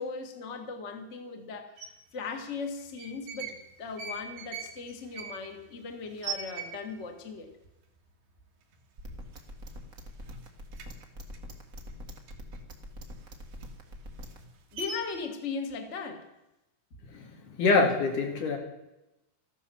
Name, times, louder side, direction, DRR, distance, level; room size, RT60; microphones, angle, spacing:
voice 1, 0.0-1.7 2.1-7.5 14.7-16.3, left 4 dB, 85° left, 4 dB, 0.6 m, -38 dB
sound 1, 1.8-1.9 2.8-3.6 3.9-7.1 7.4-7.5 7.8-8.3 8.7-8.9 9.2-10.0 10.2-12.6 13.0-15.3, right 4 dB, 80° right, 3.9 m, -41 dB
sound 2, 9.0-14.4, equal, 45° right, 1.1 m, -42 dB
voice 2, 17.6-18.6, left 3 dB, 55° left, 3 dB, 3.5 m, -24 dB
14.0 x 12.5 x 7.1 m, 0.93 s
omnidirectional pair, 4.6 m